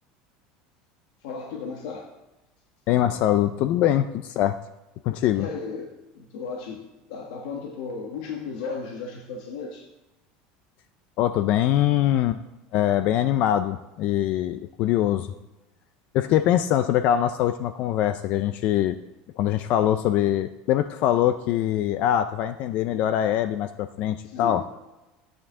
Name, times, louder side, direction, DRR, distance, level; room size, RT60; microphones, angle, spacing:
voice 1, 1.2-2.1 5.3-9.9 24.2-24.6, left 5 dB, 75° left, 1 dB, 1.3 m, -35 dB
voice 2, 2.9-4.6 5.0-5.5 11.2-12.4 12.7-15.3 16.1-19.0 19.4-24.6, left 12 dB, 45° left, 11 dB, 0.4 m, -23 dB
13.0 x 8.7 x 3.7 m, 1.0 s
cardioid pair, 165°, 3 cm